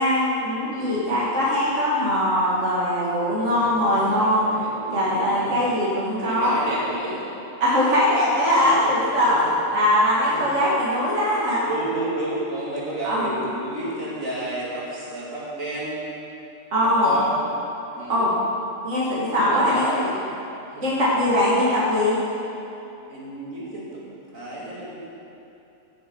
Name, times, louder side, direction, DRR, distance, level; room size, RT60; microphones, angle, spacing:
voice 1, 0.0-4.5 4.9-6.6 7.6-9.4 9.7-11.6 13.0-13.3 16.7-17.1 18.1-18.4 18.8-19.9 20.8-22.2, left 1 dB, 60° right, -8 dB, 2.5 m, -21 dB
voice 2, 3.3-5.6 6.2-7.2 8.6-8.9 9.2-9.5 10.3-10.5 11.6-16.0 16.8-17.4 17.9-18.3 19.3-20.2 20.7-20.8 23.1-24.0 24.3-25.1, right 1 dB, 80° right, -6 dB, 3.1 m, -32 dB
17.0 x 7.7 x 5.4 m, 2.9 s
omnidirectional pair, 1.4 m